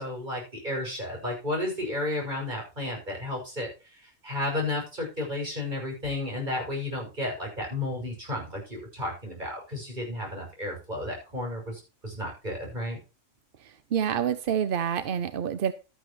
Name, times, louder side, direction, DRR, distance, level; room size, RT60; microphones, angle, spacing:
voice 1, 0.0-13.0, left 1 dB, 35° right, -1 dB, 6.5 m, -33 dB
voice 2, 13.6-15.7, right 8 dB, 50° right, 12 dB, 0.7 m, -28 dB
12.5 x 11.0 x 3.1 m, 0.30 s
omnidirectional pair, 1.4 m